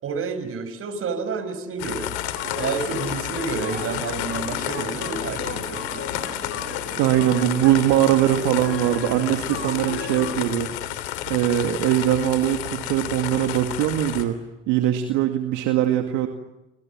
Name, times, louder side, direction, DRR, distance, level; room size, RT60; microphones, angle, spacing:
voice 1, 0.0-2.2 2.5-5.8, right 5 dB, 45° right, 11 dB, 5.6 m, -30 dB
sound 1, 1.8-14.2, left 12 dB, 80° left, 3.2 m, -31 dB
sound 2, 2.3-10.7, left 8 dB, 45° left, 3.7 m, -37 dB
sound 3, 2.4-10.8, right 4 dB, 30° right, 4.6 m, -40 dB
voice 2, 7.0-14.4 14.7-16.3, right 12 dB, 65° right, 5 dB, 2.2 m, -21 dB
29.0 x 26.0 x 7.5 m, 0.98 s
hypercardioid pair, 80°, 32 cm